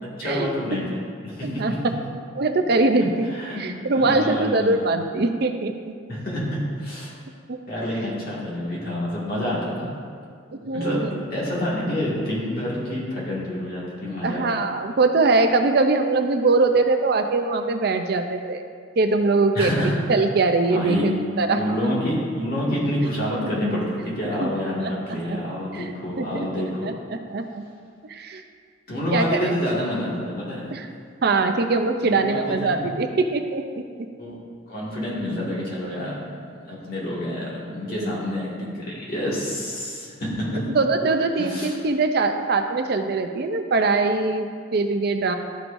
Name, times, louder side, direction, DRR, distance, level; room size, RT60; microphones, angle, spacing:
voice 1, 0.0-1.8 3.3-3.6 3.9-4.8 6.1-7.1 7.7-9.9 10.7-11.0 11.3-14.4 19.5-20.0 20.7-21.1 21.6-26.9 28.9-30.7 32.0-32.9 34.2-34.4 34.7-40.6 41.4-41.8, left 1 dB, 50° left, -6 dB, 2.0 m, -28 dB
voice 2, 2.4-3.3 3.6-5.9 7.5-7.6 10.5-11.1 14.2-18.6 19.0-21.1 21.4-21.9 24.4-24.5 25.1-25.4 25.7-25.9 26.2-27.6 28.1-28.4 29.1-29.6 30.7-30.9 31.2-33.8 37.9-38.1 40.7-45.3, right 3 dB, 55° right, 6 dB, 0.5 m, -22 dB
12.5 x 6.2 x 2.6 m, 2.1 s
head